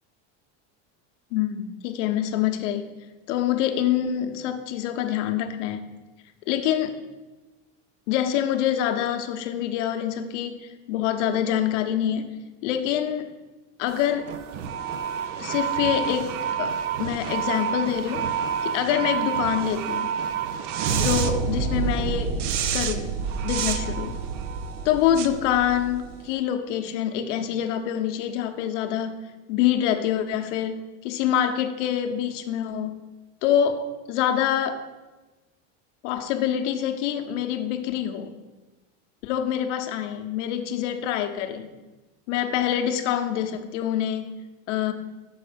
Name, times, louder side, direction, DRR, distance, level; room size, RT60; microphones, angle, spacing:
voice 1, 1.3-2.9 3.3-5.9 6.5-7.0 8.1-13.3 13.8-14.3 15.4-16.3 16.6-18.3 18.6-20.1 20.9-23.1 23.4-24.2 24.8-29.2 29.5-33.1 33.4-34.8 36.0-38.4 39.2-41.7 42.3-44.9, left 10 dB, 80° left, 6 dB, 0.8 m, -26 dB
sound 1, 13.9-26.3, right 7 dB, 85° right, 0.6 m, -28 dB
6.3 x 4.2 x 5.0 m, 1.2 s
supercardioid pair, 125°, 36 cm